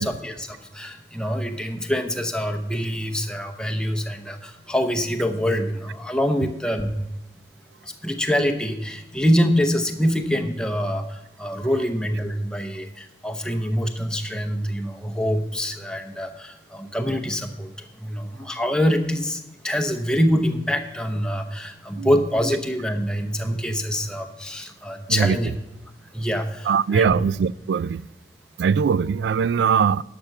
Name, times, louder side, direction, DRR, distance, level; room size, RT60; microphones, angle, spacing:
voice 1, 0.0-6.9 7.8-25.5 26.1-27.1, equal, 5° left, 0.8 m, -25 dB
voice 2, 25.1-25.4 26.7-28.1 28.6-30.0, right 6 dB, 80° right, 0.3 m, -21 dB
11.5 x 5.9 x 6.5 m
head